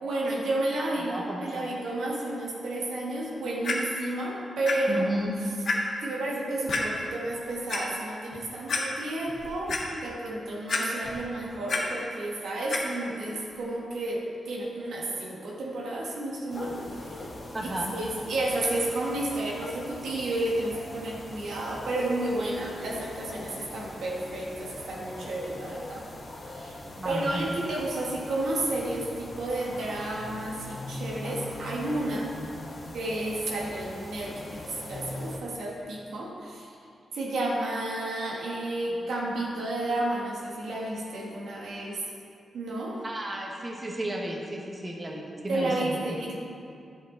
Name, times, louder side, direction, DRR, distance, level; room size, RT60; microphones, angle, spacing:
voice 1, 0.0-5.0 6.0-17.3 17.6-26.0 26.5-26.8 27.0-32.3 32.9-36.7 37.1-42.0 42.5-43.0 45.5-46.4, right 1 dB, 85° right, -3 dB, 1.6 m, -31 dB
voice 2, 1.0-1.7 4.9-5.3 17.5-17.9 27.0-27.5 43.0-46.0, right 1 dB, 25° right, -1 dB, 1.3 m, -33 dB
Clock, 3.6-3.7 4.7-4.8 5.2-5.3 5.6-5.7 6.7-6.8 7.5-7.8 8.3-8.4 8.7-8.8 9.3-9.8 10.7-11.2 11.5-11.8 12.7-12.8 13.5-13.6, left 4 dB, 65° left, 1.4 m, -28 dB
sound 1, 16.5-35.4, left 1 dB, 45° left, 1.4 m, -41 dB
10.0 x 7.4 x 3.9 m, 2.5 s
cardioid pair, 85°, 0 cm